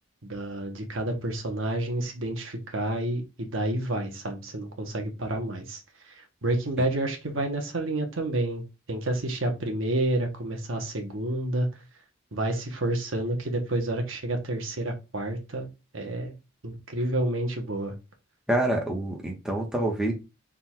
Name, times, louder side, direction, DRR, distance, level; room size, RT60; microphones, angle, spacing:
voice 1, 0.2-5.8 6.4-8.6 8.9-11.7 12.3-15.7 15.9-16.3 16.6-17.9, right 1 dB, 80° right, 1.1 m, -29 dB
voice 2, 18.5-20.1, right 1 dB, 5° right, 0.9 m, -27 dB
3.8 x 2.4 x 4.4 m
head